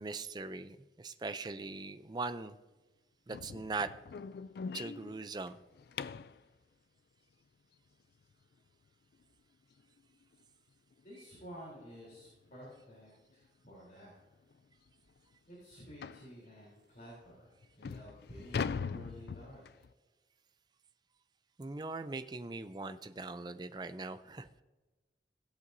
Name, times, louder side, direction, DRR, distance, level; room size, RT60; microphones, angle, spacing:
voice 1, 0.0-2.6 3.3-3.9 4.7-5.6 21.6-24.6, right 3 dB, 25° right, 12 dB, 0.4 m, -40 dB
sound 1, 3.3-6.4 9.2-9.3 9.8-10.0 10.3-10.4 10.9-11.0 12.1-12.3 12.6-12.8 13.5-13.6 13.9-14.0 14.5-14.6 16.0-16.3 17.0-17.1 17.6-19.9, left 6 dB, 65° left, 0.3 m, -41 dB
voice 2, 11.0-14.1 15.5-19.8, equal, 45° left, -7 dB, 3.5 m, -52 dB
16.5 x 8.2 x 2.6 m, 1.2 s
head